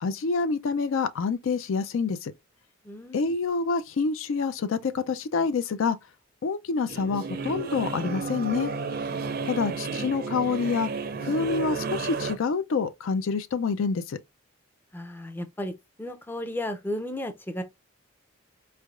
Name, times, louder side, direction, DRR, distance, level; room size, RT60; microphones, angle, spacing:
voice 1, 0.0-2.3 3.1-6.0 6.4-8.7 9.5-10.9 11.2-14.2, left 4 dB, 70° left, 0.4 m, -27 dB
voice 2, 2.8-3.4 9.6-9.8 14.9-15.7 16.0-17.6, left 1 dB, 10° left, 0.4 m, -34 dB
sound 1, 6.9-12.3, right 4 dB, 45° right, 0.5 m, -32 dB
4.5 x 3.3 x 2.4 m
head